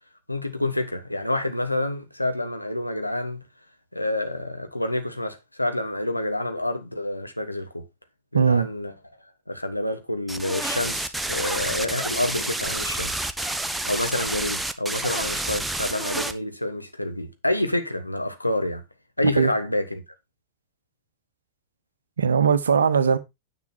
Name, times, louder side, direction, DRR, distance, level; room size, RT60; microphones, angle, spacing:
voice 1, 0.3-3.4 3.9-7.9 8.3-8.9 9.5-13.2 13.9-18.8 19.2-20.0, left 1 dB, 85° left, 1.4 m, -28 dB
voice 2, 8.3-8.7 19.4-19.5 22.2-23.2, right 6 dB, 70° right, 1.1 m, -19 dB
sound 1, 10.3-16.3, right 2 dB, 5° right, 1.0 m, -29 dB
9.7 x 6.8 x 4.4 m
figure-of-eight pair, 90°, 0 cm